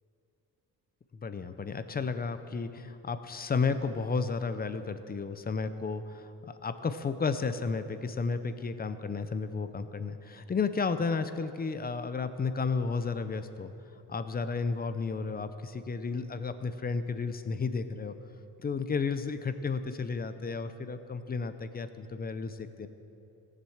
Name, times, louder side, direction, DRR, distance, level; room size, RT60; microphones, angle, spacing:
voice 1, 1.1-13.7 14.1-18.1 18.6-22.9, left 4 dB, 25° left, 11 dB, 0.5 m, -33 dB
17.0 x 7.5 x 7.1 m, 2.8 s
cardioid pair, 150°, 39 cm